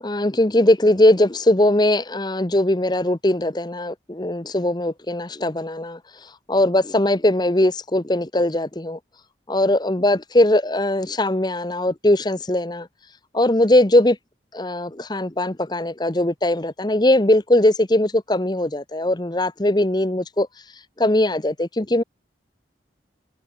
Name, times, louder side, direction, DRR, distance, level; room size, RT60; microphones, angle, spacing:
voice 1, 0.0-6.0 6.5-9.0 9.5-12.9 13.3-14.2 14.5-20.5 21.0-22.0, left 1 dB, 25° left, 1.1 m, -20 dB
head